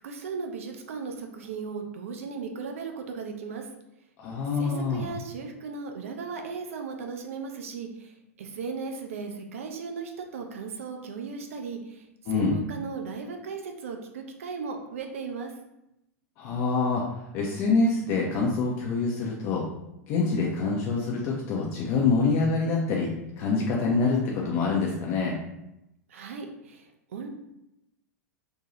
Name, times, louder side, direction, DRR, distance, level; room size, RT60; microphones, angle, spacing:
voice 1, 0.0-3.6 4.6-8.1 8.4-12.0 12.3-15.5 26.1-27.3, right 5 dB, 60° right, 3 dB, 0.4 m, -36 dB
voice 2, 4.2-5.1 12.3-12.6 16.4-17.0 17.3-19.6 20.1-23.1 23.4-25.3, left 4 dB, 40° left, -2 dB, 0.4 m, -25 dB
2.6 x 2.2 x 2.9 m, 0.87 s
figure-of-eight pair, 95°, 8 cm